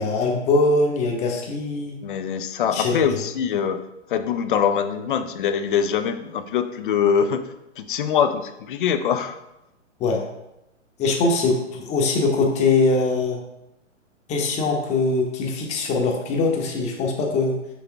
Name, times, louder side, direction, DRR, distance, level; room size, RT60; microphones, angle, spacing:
voice 1, 0.0-2.0 2.7-3.0 10.0-10.2 11.0-13.4 14.3-17.5, left 3 dB, 20° left, 1 dB, 0.9 m, -22 dB
voice 2, 2.0-3.8 4.1-7.4 7.8-9.4, left 7 dB, 45° left, 10 dB, 0.6 m, -23 dB
6.0 x 5.6 x 3.5 m, 0.89 s
figure-of-eight pair, 120°, 38 cm